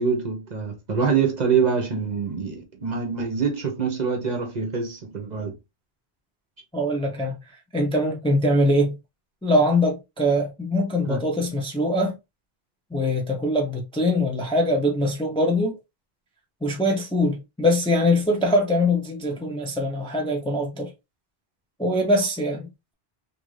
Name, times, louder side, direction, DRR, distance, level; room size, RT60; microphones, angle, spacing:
voice 1, 0.0-5.6 11.0-11.2, right 5 dB, 50° right, 0.7 m, -25 dB
voice 2, 6.7-7.3 7.7-9.0 9.4-12.2 12.9-15.8 16.6-20.9 21.8-22.9, left 1 dB, 5° left, 0.4 m, -22 dB
2.6 x 2.5 x 3.1 m
omnidirectional pair, 1.1 m